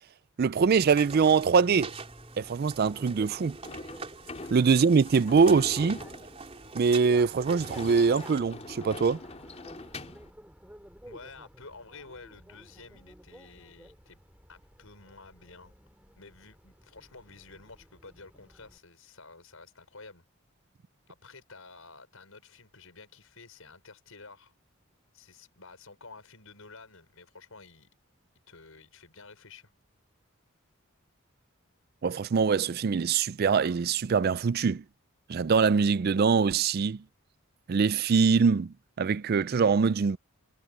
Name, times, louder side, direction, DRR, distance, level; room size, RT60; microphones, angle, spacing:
voice 1, 0.4-1.9 2.4-3.6 4.5-6.0 6.7-9.2 32.0-34.8 35.3-37.0 37.7-40.2, right 5 dB, 45° right, 0.4 m, -23 dB
Bicycle, 0.6-18.8, equal, 5° right, 6.3 m, -52 dB
sound 1, 1.0-8.4, right 4 dB, 30° right, 4.1 m, -44 dB
Sliding door / Slam, 3.6-10.3, left 2 dB, 30° left, 3.4 m, -43 dB
voice 2, 11.0-14.2 14.5-15.8 16.2-20.3 21.1-24.5 25.1-27.9 28.5-29.7, left 4 dB, 80° left, 5.7 m, -51 dB
head